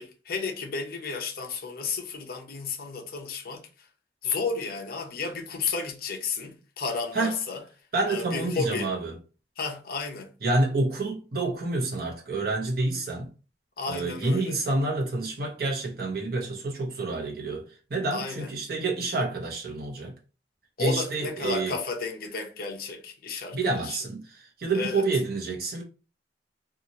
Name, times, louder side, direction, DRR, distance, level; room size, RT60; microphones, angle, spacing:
voice 1, 0.0-3.9 4.2-7.6 8.1-8.9 9.6-10.3 13.8-14.6 18.1-18.5 20.8-24.0 24.7-25.0, left 4 dB, 55° left, 0.6 m, -32 dB
voice 2, 7.9-9.1 10.4-13.3 13.9-20.1 20.8-21.8 23.5-25.8, right 2 dB, 60° right, 0.9 m, -28 dB
2.7 x 2.4 x 2.8 m
head